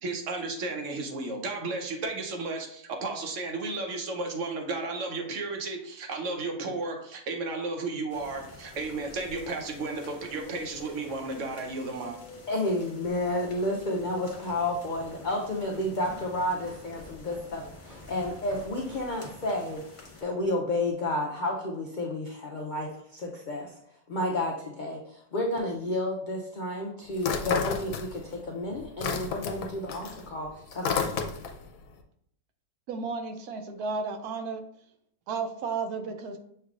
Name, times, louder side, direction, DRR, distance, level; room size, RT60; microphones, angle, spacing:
voice 1, 0.0-12.2, right 3 dB, 60° right, 3 dB, 1.0 m, -33 dB
sound 1, 8.1-20.2, left 3 dB, 35° left, 1.0 m, -49 dB
voice 2, 12.5-19.8 20.2-23.8 24.1-31.2, left 1 dB, 85° left, 0 dB, 0.4 m, -31 dB
Walk footsteps, 13.9-20.4, equal, 25° right, 1.3 m, -51 dB
sound 2, 27.2-28.4 28.7-31.7, left 6 dB, 70° left, 1.0 m, -31 dB
voice 3, 32.9-34.6 35.3-36.4, right 4 dB, 85° right, 6 dB, 1.1 m, -33 dB
6.5 x 3.3 x 2.4 m, 0.69 s
omnidirectional pair, 1.6 m